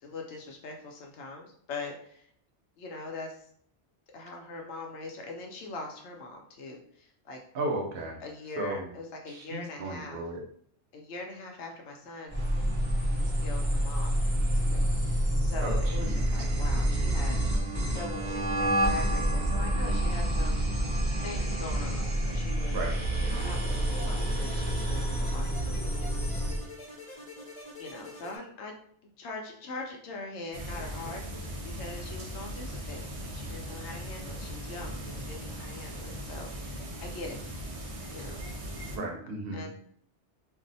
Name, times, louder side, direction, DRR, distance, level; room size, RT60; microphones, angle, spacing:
voice 1, 0.0-2.3 2.8-3.5 4.1-7.4 8.2-10.2 10.9-12.4 13.2-14.1 14.5-20.6 21.2-22.8 23.2-25.8 27.8-28.7 29.2-36.7 37.0-37.4 38.1-38.4 39.5-39.7, left 3 dB, 75° left, 1 dB, 0.9 m, -42 dB
voice 2, 7.5-8.2 8.6-8.9 9.3-10.4 15.6-16.2 22.7-22.9 38.9-39.6, right 2 dB, 60° right, 1 dB, 0.9 m, -34 dB
sound 1, 12.3-26.6, right 1 dB, 25° right, 1.0 m, -28 dB
sound 2, 23.3-28.4, left 1 dB, 25° left, 0.6 m, -46 dB
sound 3, 30.5-39.0, equal, 45° right, 0.5 m, -39 dB
2.6 x 2.0 x 3.9 m, 0.64 s
omnidirectional pair, 1.2 m